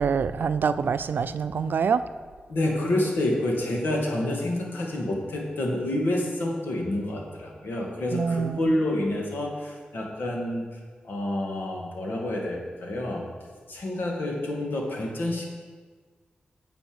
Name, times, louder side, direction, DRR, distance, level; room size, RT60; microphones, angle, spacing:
voice 1, 0.0-2.0 8.1-8.7, right 6 dB, 70° right, 13 dB, 0.4 m, -25 dB
voice 2, 2.5-10.7 11.0-13.2 13.7-15.5, left 1 dB, 75° left, 0 dB, 1.8 m, -28 dB
9.0 x 7.0 x 5.0 m, 1.5 s
cardioid pair, 45°, 4 cm